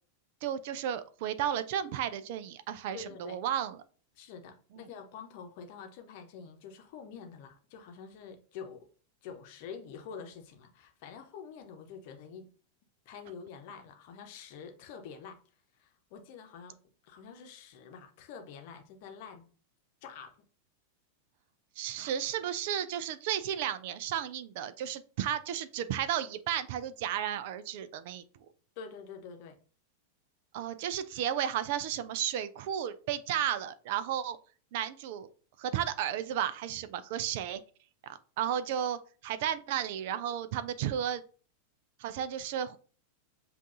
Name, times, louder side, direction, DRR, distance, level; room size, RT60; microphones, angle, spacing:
voice 1, 0.4-3.8 4.7-4.8 21.8-28.2 30.5-34.4 34.7-35.3 35.6-37.6 38.4-41.2 42.0-42.8, right 10 dB, 50° right, 0.4 m, -33 dB
voice 2, 2.9-3.4 4.1-8.9 9.2-12.5 13.0-15.4 15.7-16.8 17.0-19.5 20.0-20.4 28.8-29.6, left 6 dB, 50° left, 0.9 m, -47 dB
7.4 x 2.5 x 2.6 m
figure-of-eight pair, 90°, 0 cm